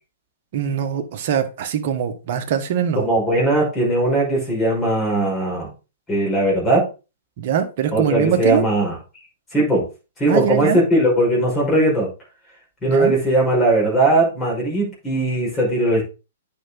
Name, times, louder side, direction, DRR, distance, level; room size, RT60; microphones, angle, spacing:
voice 1, 0.5-3.0 7.4-8.7 10.3-10.8 12.9-13.1, right 8 dB, 45° right, 1.5 m, -22 dB
voice 2, 2.9-5.7 6.1-6.8 7.9-8.9 9.5-9.8 10.2-12.1 12.8-16.0, right 1 dB, 15° left, 5.5 m, -19 dB
9.2 x 5.9 x 3.8 m
figure-of-eight pair, 115°, 0 cm